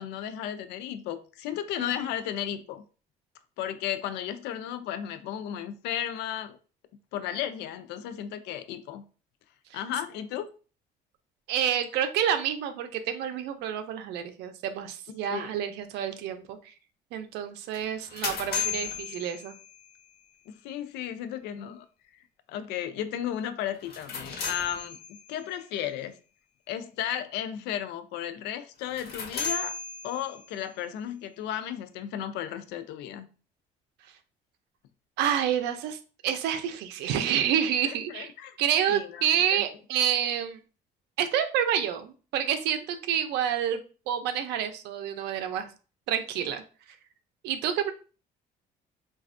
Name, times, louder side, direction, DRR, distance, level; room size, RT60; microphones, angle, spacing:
voice 1, 0.0-2.8 3.6-6.6 7.1-9.0 9.7-10.5 15.3-15.6 20.5-21.9 22.5-25.0 25.3-26.2 26.7-29.8 30.0-33.3 38.1-38.6 38.9-39.6, left 10 dB, 90° left, 0.4 m, -34 dB
voice 2, 11.5-16.7 17.1-19.5 35.2-38.3 38.6-40.6 41.2-45.7 46.1-46.6 47.4-47.9, right 9 dB, 85° right, 0.5 m, -28 dB
sound 1, 17.7-20.0 23.7-25.4 28.8-30.6, left 5 dB, 65° left, 1.1 m, -35 dB
4.0 x 2.3 x 2.5 m
cardioid pair, 110°, 17 cm